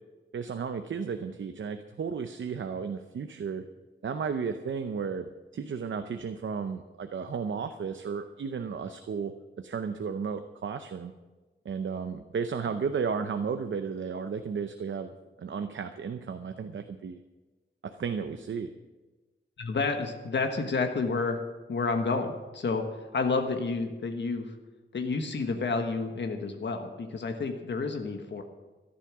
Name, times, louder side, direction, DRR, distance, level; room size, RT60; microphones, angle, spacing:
voice 1, 0.3-3.6 4.0-11.1 11.6-15.1 15.4-17.2 17.8-18.7, right 6 dB, 70° right, 8 dB, 0.7 m, -34 dB
voice 2, 19.6-21.4 21.7-22.8 23.1-24.5 24.9-28.4, left 4 dB, 60° left, 5 dB, 1.4 m, -30 dB
13.5 x 11.5 x 6.1 m, 1.2 s
wide cardioid pair, 170°, 21 cm